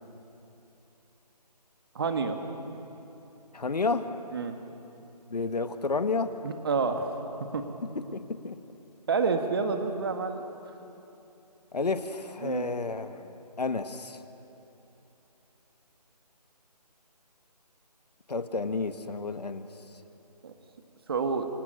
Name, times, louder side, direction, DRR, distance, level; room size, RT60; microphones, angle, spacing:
voice 1, 2.0-2.4 4.3-4.6 6.4-7.1 7.5-7.6 9.1-10.4 12.4-12.7 20.4-20.5 21.1-21.5, right 4 dB, 35° right, 6 dB, 1.8 m, -28 dB
voice 2, 3.5-4.1 5.3-6.3 7.8-8.6 11.7-14.2 18.3-19.7, left 4 dB, 75° left, 9 dB, 1.7 m, -31 dB
27.0 x 27.0 x 6.8 m, 2.9 s
figure-of-eight pair, 165°, 21 cm